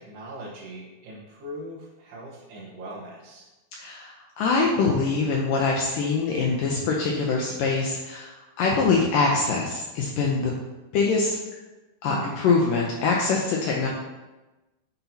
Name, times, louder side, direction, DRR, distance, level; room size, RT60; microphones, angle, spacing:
voice 1, 0.0-3.4 12.0-12.4, right 1 dB, 90° right, -8 dB, 3.3 m, -39 dB
voice 2, 3.8-10.5 10.9-11.4 12.0-13.9, left 4 dB, 80° left, -2 dB, 2.0 m, -24 dB
9.4 x 5.8 x 2.8 m, 1.1 s
omnidirectional pair, 4.5 m